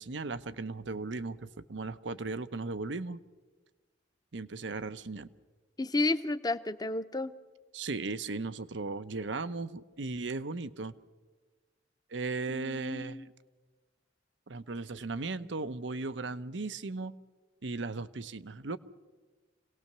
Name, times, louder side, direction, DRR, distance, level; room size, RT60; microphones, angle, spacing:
voice 1, 0.0-3.2 4.3-5.3 7.7-10.9 12.1-13.2 14.5-17.1 17.6-18.8, right 3 dB, 85° right, 13 dB, 0.8 m, -37 dB
voice 2, 5.8-7.3 12.5-13.3, left 2 dB, 20° left, 12 dB, 0.7 m, -32 dB
27.0 x 18.5 x 6.8 m, 1.3 s
head